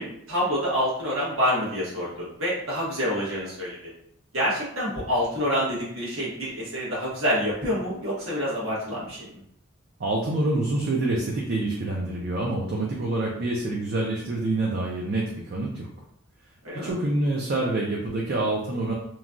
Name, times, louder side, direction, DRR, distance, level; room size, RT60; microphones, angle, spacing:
voice 1, 0.0-3.9 4.3-9.2 16.6-16.9, equal, 85° right, -7 dB, 1.2 m, -27 dB
voice 2, 10.0-15.9 16.8-18.9, right 2 dB, 50° right, -2 dB, 0.4 m, -26 dB
3.0 x 2.2 x 2.5 m, 0.71 s
head